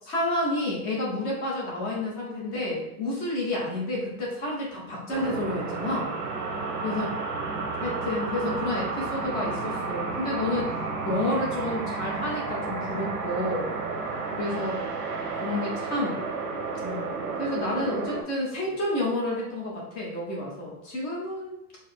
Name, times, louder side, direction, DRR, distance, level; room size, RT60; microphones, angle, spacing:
voice 1, 0.0-6.1 6.8-7.1 7.8-10.7 11.0-13.7 14.3-14.8 15.4-16.2 16.8-17.1 17.4-21.6, left 1 dB, 20° left, -4 dB, 0.7 m, -30 dB
sound 1, 5.1-18.2, right 4 dB, 80° right, 1.1 m, -32 dB
4.7 x 2.0 x 4.3 m, 0.82 s
supercardioid pair, 165°, 47 cm